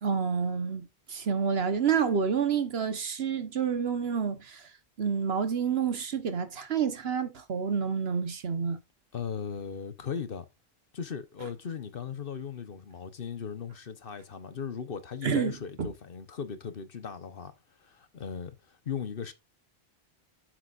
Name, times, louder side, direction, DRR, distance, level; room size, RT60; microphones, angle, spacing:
voice 1, 0.0-4.7 5.0-8.8 15.2-15.5 15.8-15.9, right 6 dB, 70° right, 1.3 m, -29 dB
voice 2, 9.1-10.5 10.9-17.5 17.8-19.3, left 7 dB, 60° left, 1.2 m, -38 dB
9.0 x 7.8 x 2.5 m
omnidirectional pair, 1.1 m